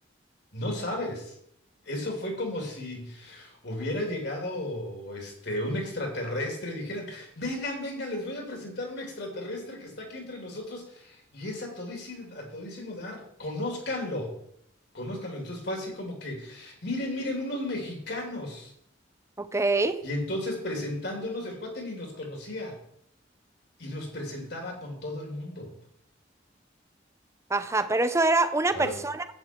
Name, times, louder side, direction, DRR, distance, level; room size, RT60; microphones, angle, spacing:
voice 1, 0.5-1.3 1.8-14.3 14.9-18.7 20.0-22.7 23.8-25.7 28.7-29.0, left 1 dB, 60° left, 2 dB, 3.1 m, -34 dB
voice 2, 19.4-20.0 27.5-29.2, right 2 dB, 15° right, 11 dB, 0.6 m, -25 dB
10.5 x 8.6 x 4.6 m, 0.71 s
head